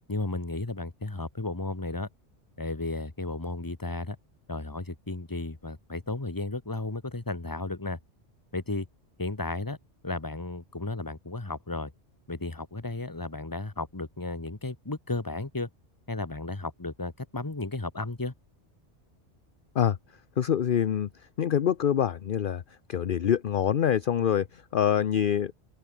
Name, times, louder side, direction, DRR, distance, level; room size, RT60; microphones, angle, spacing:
voice 1, 0.1-2.1 2.6-4.2 4.5-8.0 8.5-8.9 9.2-9.8 10.0-11.9 12.3-15.7 16.1-18.3, left 2 dB, 20° left, 1.4 m, -34 dB
voice 2, 20.4-21.1 21.4-22.6 22.9-25.5, left 9 dB, 55° left, 0.8 m, -25 dB
open air
omnidirectional pair, 1.2 m